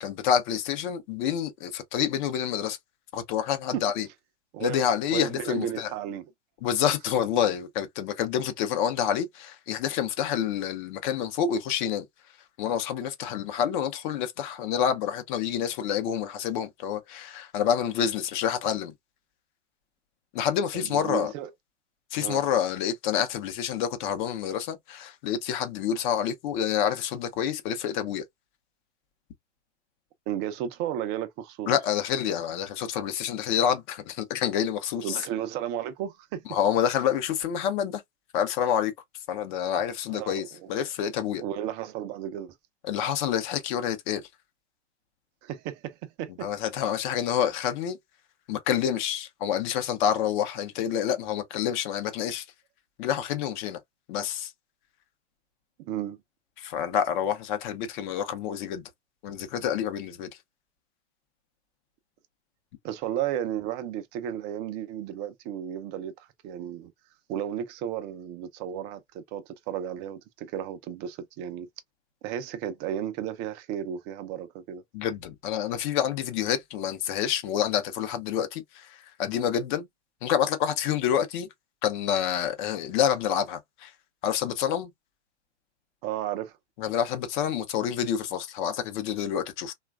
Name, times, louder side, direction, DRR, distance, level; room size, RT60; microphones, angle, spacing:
voice 1, 0.0-2.8 3.1-4.1 4.6-5.9 6.6-12.1 12.6-18.9 20.3-21.3 22.1-28.2 31.7-35.2 36.5-38.0 38.3-38.9 39.3-41.4 42.8-44.2 46.4-48.0 48.5-52.5 53.0-53.8 54.1-54.5 56.6-58.8 59.2-60.3 74.9-79.9 80.2-81.5 81.8-83.9 84.2-84.9 86.8-89.7, left 9 dB, 45° left, 0.7 m, -28 dB
voice 2, 5.1-6.2 20.7-21.5 22.2-22.4 30.3-31.7 35.0-36.4 40.1-40.7 41.4-42.5 45.4-46.5 55.8-56.2 62.8-66.9 67.3-71.7 72.2-74.8 86.0-86.5, right 10 dB, 30° right, 0.5 m, -33 dB
3.0 x 2.4 x 2.3 m
hypercardioid pair, 105°, 35 cm